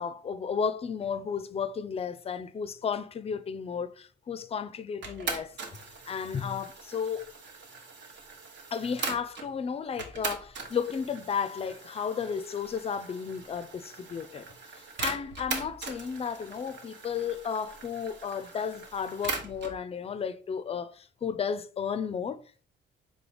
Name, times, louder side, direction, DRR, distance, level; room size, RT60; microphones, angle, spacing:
voice 1, 0.0-5.6 6.1-7.3 8.7-14.5 15.0-22.7, left 6 dB, 30° left, 0.4 m, -33 dB
sound 1, 5.0-9.5 10.0-19.8, right 4 dB, 65° right, 1.0 m, -40 dB
3.8 x 3.2 x 3.4 m
cardioid pair, 90°, 20 cm